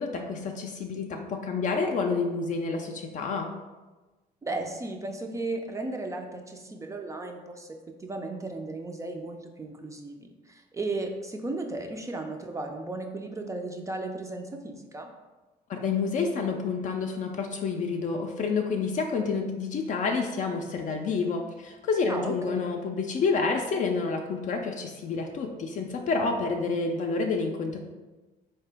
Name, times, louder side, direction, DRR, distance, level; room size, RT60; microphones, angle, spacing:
voice 1, 0.0-3.5 15.7-27.8, left 4 dB, 50° left, 2 dB, 0.4 m, -29 dB
voice 2, 4.4-7.8 8.0-15.1 22.1-22.6, right 2 dB, 20° right, 3 dB, 0.3 m, -35 dB
3.7 x 2.8 x 3.3 m, 1.2 s
cardioid pair, 110°, 17 cm